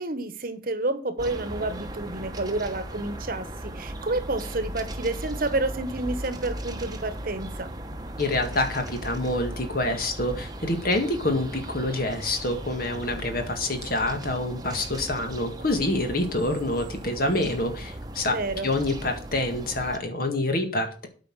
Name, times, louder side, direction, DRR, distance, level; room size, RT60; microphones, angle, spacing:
voice 1, 0.0-7.7 18.2-18.7, right 2 dB, 50° right, 11 dB, 1.2 m, -29 dB
sound 1, 1.2-20.0, right 1 dB, 20° right, 1.0 m, -37 dB
voice 2, 8.2-18.4 18.6-21.1, left 2 dB, 50° left, 6 dB, 1.9 m, -27 dB
8.8 x 5.6 x 7.4 m, 0.38 s
head